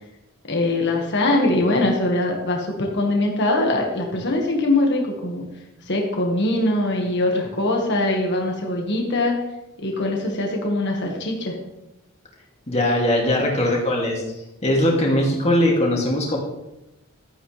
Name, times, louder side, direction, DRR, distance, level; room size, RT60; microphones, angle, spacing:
voice 1, 0.5-5.5 5.9-9.4 9.8-11.5, left 2 dB, 50° left, 0 dB, 1.8 m, -22 dB
voice 2, 12.7-14.2 14.6-16.4, left 1 dB, 30° left, -2 dB, 2.6 m, -20 dB
13.0 x 9.3 x 3.4 m, 0.93 s
head